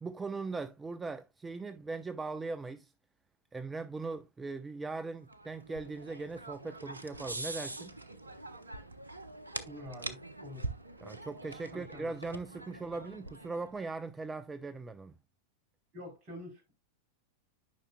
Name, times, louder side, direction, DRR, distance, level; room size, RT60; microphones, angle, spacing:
voice 1, 0.0-2.9 3.5-8.0 11.0-15.2, right 3 dB, 15° right, 0.4 m, -40 dB
sound 1, 5.3-13.8, right 2 dB, 80° right, 0.7 m, -44 dB
voice 2, 9.6-10.7 11.7-12.1 12.9-13.1 15.9-16.7, left 1 dB, 35° right, 3.7 m, -47 dB
10.5 x 5.7 x 2.2 m
figure-of-eight pair, 90°, 0 cm